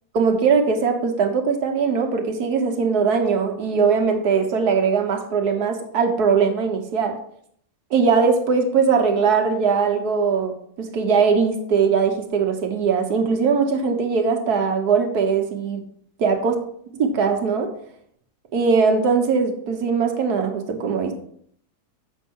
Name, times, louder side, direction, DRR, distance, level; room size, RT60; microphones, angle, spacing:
voice 1, 0.2-7.2 7.9-15.8 16.2-16.5 17.0-17.7 18.5-21.1, right 5 dB, 80° right, 4 dB, 1.7 m, -20 dB
7.5 x 5.5 x 5.4 m, 0.66 s
omnidirectional pair, 1.6 m